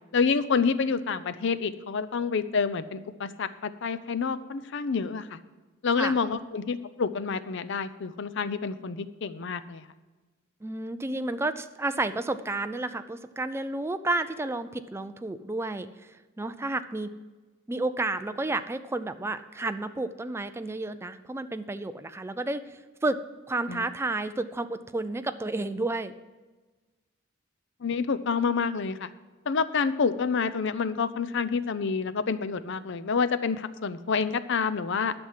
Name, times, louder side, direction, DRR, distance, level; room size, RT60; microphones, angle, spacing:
voice 1, 0.1-5.4 5.8-9.8 23.7-23.9 27.8-29.1 29.5-35.1, left 5 dB, 65° left, 14 dB, 0.6 m, -28 dB
voice 2, 10.6-15.9 16.4-17.1 17.7-22.6 23.0-23.2 23.5-26.1, right 2 dB, 15° right, 10 dB, 0.4 m, -31 dB
11.5 x 6.1 x 7.4 m, 1.3 s
head